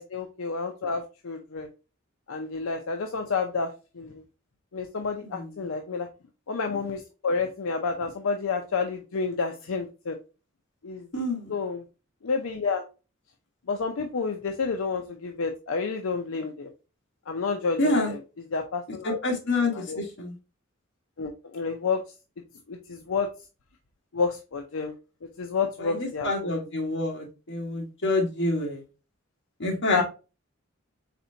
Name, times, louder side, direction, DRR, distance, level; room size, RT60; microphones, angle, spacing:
voice 1, 0.0-1.7 2.3-4.2 4.7-6.1 6.5-10.2 10.8-11.1 11.5-11.8 12.2-12.8 13.7-16.7 17.3-18.2 18.5-19.2 19.7-20.0 21.2-22.0 22.7-23.3 24.1-24.9 25.4-26.5 29.9-30.0, left 4 dB, 80° left, 4 dB, 0.5 m, -30 dB
voice 2, 11.1-11.5 17.8-18.1 19.0-20.3 25.8-28.8 29.6-30.0, left 2 dB, 60° left, 1 dB, 1.4 m, -27 dB
4.2 x 4.2 x 2.7 m, 0.31 s
head